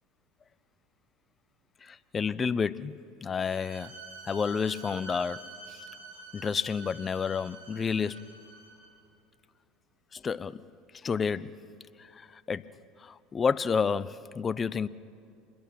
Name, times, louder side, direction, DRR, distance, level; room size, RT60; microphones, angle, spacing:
voice 1, 1.8-3.9 4.3-5.8 6.3-8.3 10.1-10.7 11.0-11.6 12.2-12.7 13.0-14.9, left 6 dB, 30° left, 0.6 m, -30 dB
Bowed string instrument, 3.4-8.9, right 3 dB, 70° right, 6.0 m, -47 dB
27.0 x 21.5 x 6.0 m
hypercardioid pair, 85°, 0 cm